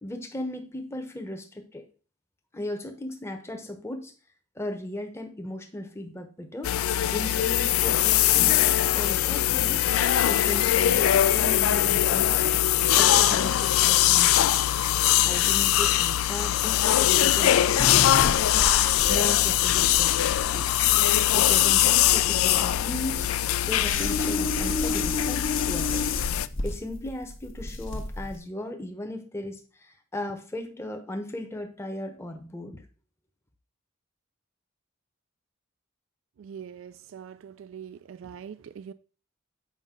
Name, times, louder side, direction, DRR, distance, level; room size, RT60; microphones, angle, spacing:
voice 1, 0.0-1.8 2.5-4.1 4.6-6.7 7.0-9.9 10.2-12.6 12.9-14.6 15.2-18.5 19.1-20.9 21.3-23.3 23.6-26.2 26.6-32.8, left 1 dB, 10° left, 0.8 m, -37 dB
sound 1, 6.6-26.5, left 12 dB, 85° left, 0.4 m, -22 dB
sound 2, 17.8-28.4, left 2 dB, 65° left, 0.9 m, -32 dB
voice 2, 36.4-38.9, right 8 dB, 70° right, 0.3 m, -43 dB
7.3 x 5.1 x 3.7 m
head